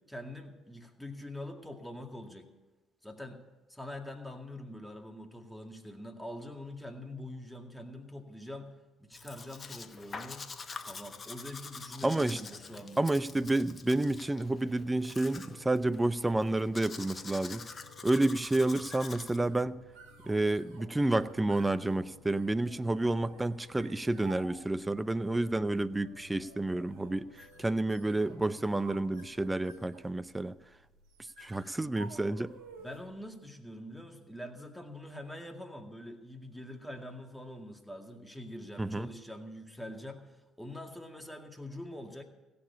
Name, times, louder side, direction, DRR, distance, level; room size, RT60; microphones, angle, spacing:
voice 1, 0.1-2.5 3.0-3.4 3.7-8.7 9.0-10.5 10.9-13.0 32.8-42.2, left 1 dB, 5° left, 4 dB, 2.1 m, -44 dB
Domestic sounds home sounds, 9.1-19.4, left 4 dB, 40° left, 1.0 m, -46 dB
voice 2, 12.0-12.4 13.0-17.6 18.0-19.8 20.2-27.3 27.6-30.5 31.4-32.5 38.8-39.1, right 2 dB, 15° right, 14 dB, 0.6 m, -30 dB
sound 1, 12.5-29.4, left 2 dB, 75° left, 3.8 m, -58 dB
sound 2, 18.4-33.2, right 3 dB, 75° right, 1.8 m, -54 dB
16.0 x 7.0 x 8.5 m, 1.1 s
hypercardioid pair, 55°, 0 cm